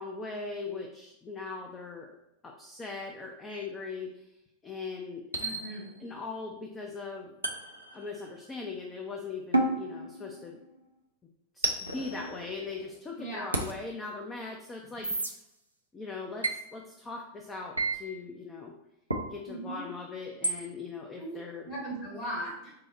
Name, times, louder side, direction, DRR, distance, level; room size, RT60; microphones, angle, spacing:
voice 1, 0.0-2.1 2.4-4.2 4.6-5.3 6.0-7.3 7.9-10.6 11.5-15.3 15.9-18.7 19.3-21.7, left 4 dB, 20° left, 1 dB, 0.4 m, -40 dB
sound 1, 3.5-3.7 5.3-6.1 7.4-8.5 9.5-10.8 11.6-13.0 13.5-13.7 15.0-15.3 16.4-16.6 17.8-18.0 19.1-19.3 20.4-20.6, right 2 dB, 85° right, 0.4 m, -32 dB
voice 2, 5.4-5.9 13.2-13.5 19.5-19.8 21.2-21.3 21.6-22.7, right 1 dB, 40° left, -5 dB, 1.5 m, -38 dB
4.6 x 2.0 x 3.7 m, 0.85 s
figure-of-eight pair, 90°, 0 cm